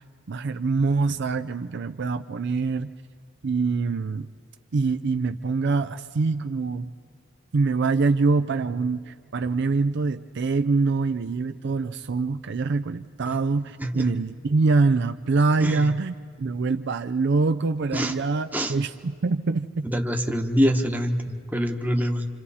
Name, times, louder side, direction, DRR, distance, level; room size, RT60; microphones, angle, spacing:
voice 1, 0.3-2.9 3.4-4.3 4.7-6.9 7.5-19.9, right 4 dB, 55° right, 9 dB, 0.5 m, -24 dB
voice 2, 15.6-15.9 17.9-18.1 18.5-18.7 19.8-22.3, equal, 10° right, 3 dB, 1.1 m, -25 dB
29.5 x 27.0 x 4.2 m, 2.1 s
head